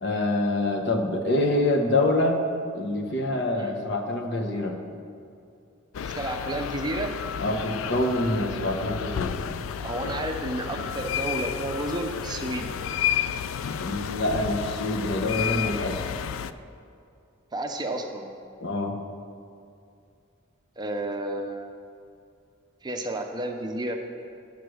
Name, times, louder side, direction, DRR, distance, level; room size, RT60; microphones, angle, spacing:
voice 1, 0.0-2.4 2.7-4.8 7.4-9.4 13.8-16.0 18.6-19.0, left 2 dB, 55° left, 3 dB, 1.0 m, -26 dB
sound 1, 5.9-16.5, left 8 dB, 80° left, 0.4 m, -31 dB
voice 2, 6.0-7.1 9.8-12.7 17.5-18.3 20.8-21.7 22.8-24.1, right 1 dB, 20° right, 4 dB, 0.6 m, -31 dB
10.0 x 6.6 x 6.3 m, 2.5 s
head